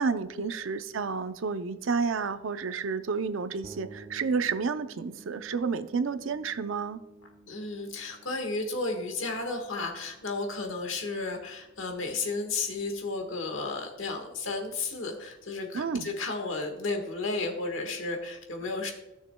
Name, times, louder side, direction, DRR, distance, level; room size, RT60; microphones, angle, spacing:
voice 1, 0.0-7.0 15.7-16.1, right 5 dB, 70° right, 11 dB, 0.5 m, -30 dB
sound 1, 3.6-13.2, right 2 dB, 20° right, 0.5 m, -54 dB
voice 2, 7.5-18.9, left 3 dB, 70° left, 3 dB, 1.5 m, -33 dB
15.0 x 6.5 x 2.2 m, 1.0 s
head